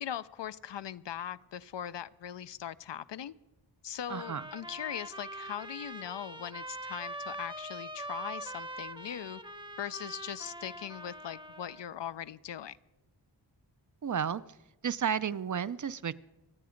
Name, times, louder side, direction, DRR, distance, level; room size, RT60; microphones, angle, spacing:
voice 1, 0.0-3.3 3.8-9.4 9.8-12.8, left 10 dB, 70° left, 0.6 m, -40 dB
sound 1, 4.1-11.9, right 1 dB, 10° right, 0.8 m, -43 dB
voice 2, 4.1-4.5 14.0-14.4 14.8-16.1, right 7 dB, 45° right, 0.5 m, -32 dB
25.5 x 8.6 x 5.1 m
wide cardioid pair, 105°, 44 cm